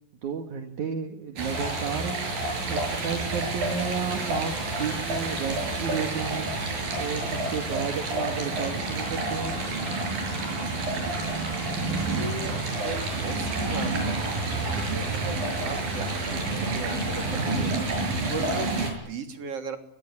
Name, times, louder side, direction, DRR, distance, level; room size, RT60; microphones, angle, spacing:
voice 1, 0.2-2.2 2.7-4.5 4.8-6.5 7.0-9.6, right 6 dB, 60° right, 5 dB, 3.3 m, -32 dB
Stream, 1.4-18.9, right 2 dB, 80° right, 8.5 m, -29 dB
voice 2, 10.9-11.4 11.7-14.2 14.6-17.9 18.2-19.8, right 4 dB, 45° right, 6 dB, 3.9 m, -38 dB
24.0 x 21.0 x 9.8 m, 0.67 s
omnidirectional pair, 4.1 m